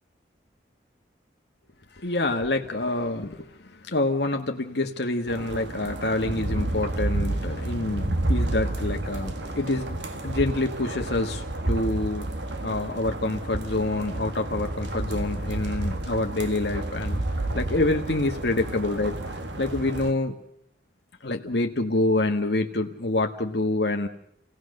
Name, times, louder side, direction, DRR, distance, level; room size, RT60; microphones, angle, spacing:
voice 1, 1.9-12.3 12.6-17.2 17.5-20.4 21.2-24.1, left 2 dB, 70° left, 3 dB, 1.4 m, -27 dB
sound 1, 5.3-20.1, right 1 dB, 80° right, 2.0 m, -30 dB
28.5 x 18.0 x 6.5 m, 0.77 s
head